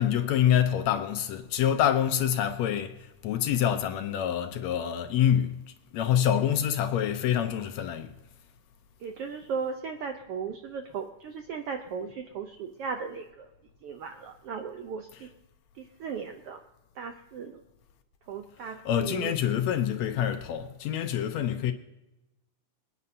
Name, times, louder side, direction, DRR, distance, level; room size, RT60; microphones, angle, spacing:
voice 1, 0.0-5.6 5.9-8.1 18.9-21.7, left 10 dB, 75° left, 1.8 m, -26 dB
voice 2, 9.0-13.5 13.8-15.3 15.8-16.6 17.0-17.6 18.3-19.4, right 6 dB, 75° right, 1.3 m, -36 dB
26.5 x 9.4 x 2.7 m
omnidirectional pair, 3.5 m